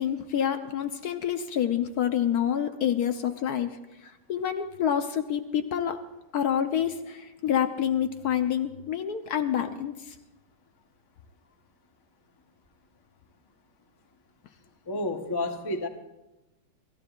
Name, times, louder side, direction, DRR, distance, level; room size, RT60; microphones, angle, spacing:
voice 1, 0.0-3.7 4.0-6.0 6.3-10.1, left 9 dB, 65° left, 7 dB, 1.1 m, -27 dB
voice 2, 14.9-15.9, left 2 dB, 30° left, 4 dB, 0.4 m, -30 dB
27.5 x 14.0 x 2.4 m, 0.98 s
omnidirectional pair, 2.1 m